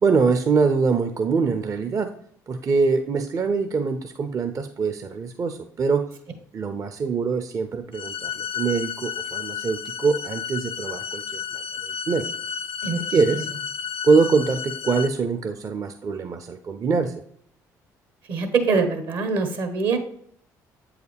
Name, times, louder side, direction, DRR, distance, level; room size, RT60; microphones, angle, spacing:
voice 1, 0.0-2.1 2.5-6.0 6.5-12.2 13.1-13.5 14.0-17.1, right 4 dB, 40° right, 7 dB, 0.5 m, -23 dB
sound 1, 7.9-15.1, left 8 dB, 65° left, 0.5 m, -32 dB
voice 2, 12.8-13.4 18.3-20.0, right 4 dB, 65° right, 8 dB, 1.2 m, -24 dB
7.9 x 4.7 x 3.4 m, 0.66 s
hypercardioid pair, 55°, 9 cm